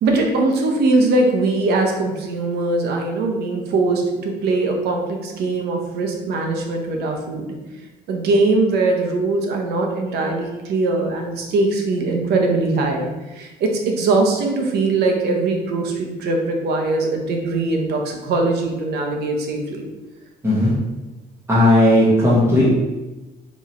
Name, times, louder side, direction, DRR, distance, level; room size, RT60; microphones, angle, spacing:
voice 1, 0.0-7.5 8.1-19.9, right 3 dB, 75° right, 2 dB, 0.9 m, -21 dB
voice 2, 21.5-22.7, left 1 dB, 15° right, -7 dB, 1.4 m, -15 dB
3.6 x 3.1 x 4.2 m, 1.1 s
cardioid pair, 110°, 17 cm